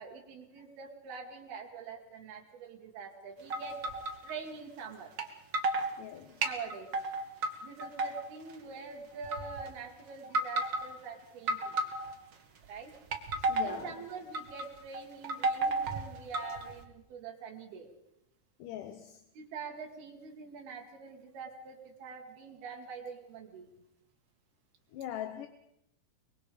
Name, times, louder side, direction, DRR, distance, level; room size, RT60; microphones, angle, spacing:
voice 1, 0.0-4.0 4.2-5.1 6.4-6.9 7.6-11.8 12.7-13.0 13.6-17.9 19.3-23.7, right 5 dB, 85° right, 1 dB, 3.8 m, -45 dB
sound 1, 3.5-4.3 5.2-5.3 5.5-5.9 6.4-7.5 7.8-8.6 9.2-9.7 10.2-10.9 11.5-12.3 12.9-13.8 14.3-14.7 14.9-16.8, right 2 dB, 45° right, 1.5 m, -32 dB
voice 2, 6.0-6.5 11.6-11.7 13.4-13.9 18.6-19.2 24.9-25.5, left 11 dB, 70° left, 8 dB, 2.3 m, -42 dB
24.0 x 22.0 x 5.1 m, 0.81 s
omnidirectional pair, 4.3 m